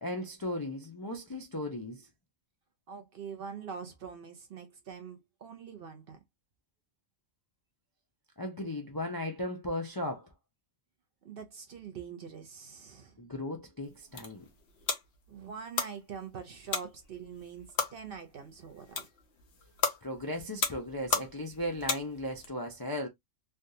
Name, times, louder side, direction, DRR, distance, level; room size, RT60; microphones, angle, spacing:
voice 1, 0.0-2.1 8.4-10.3 13.2-14.4 20.0-23.1, left 1 dB, 30° left, 0.4 m, -36 dB
voice 2, 2.9-6.2 11.2-13.2 15.3-19.1, right 6 dB, 55° right, 0.7 m, -44 dB
sound 1, 13.8-22.5, left 5 dB, 60° left, 1.0 m, -36 dB
3.4 x 2.4 x 2.7 m
omnidirectional pair, 1.3 m